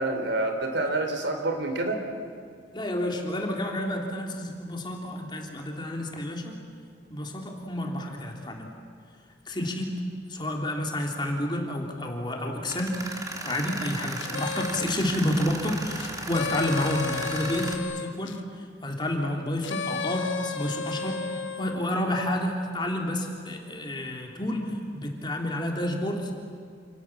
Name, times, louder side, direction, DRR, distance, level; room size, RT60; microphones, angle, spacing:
voice 1, 0.0-2.0, right 2 dB, 65° right, 4 dB, 4.0 m, -27 dB
voice 2, 2.7-6.6 7.1-8.7 9.5-10.0 10.3-13.0 13.4-26.4, left 1 dB, 25° left, 1 dB, 3.2 m, -30 dB
Tools, 12.7-17.7, right 2 dB, 20° right, 2.6 m, -36 dB
sound 1, 14.2-15.1 16.0-18.4 19.6-21.8, left 5 dB, 80° left, 1.6 m, -33 dB
29.0 x 27.5 x 7.4 m, 2.2 s
head